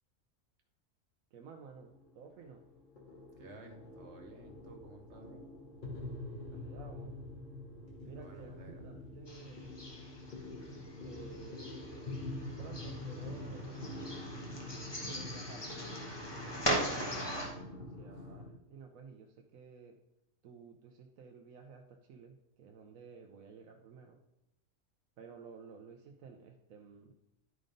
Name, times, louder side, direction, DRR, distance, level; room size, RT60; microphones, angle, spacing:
voice 1, 1.3-2.6 6.5-7.2 8.0-9.7 10.3-10.4 11.0-11.6 12.6-13.8 15.1-15.6 16.7-17.4 17.8-19.9 20.4-24.2 25.2-27.2, right 5 dB, 80° right, 3 dB, 1.1 m, -53 dB
sound 1, 1.7-18.5, left 2 dB, 35° left, 1.7 m, -46 dB
voice 2, 3.4-5.4 8.2-8.8, right 2 dB, 55° right, 3 dB, 1.5 m, -53 dB
sound 2, 9.3-17.5, equal, 20° left, 1.3 m, -40 dB
11.0 x 3.8 x 5.2 m, 0.87 s
omnidirectional pair, 1.4 m